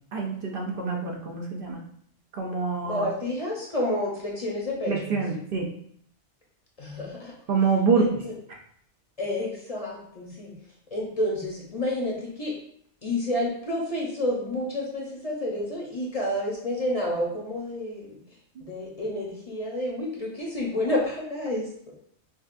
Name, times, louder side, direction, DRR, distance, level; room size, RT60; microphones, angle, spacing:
voice 1, 0.1-1.8 2.3-3.0 4.9-5.7 7.5-8.1 18.6-18.7, right 4 dB, 60° right, 0 dB, 0.7 m, -26 dB
voice 2, 2.8-5.2 6.8-7.3 7.9-8.3 9.2-10.5 10.9-12.5 13.0-18.2 18.6-21.7, left 1 dB, 40° left, -3 dB, 0.7 m, -29 dB
5.3 x 2.4 x 2.5 m, 0.65 s
omnidirectional pair, 1.1 m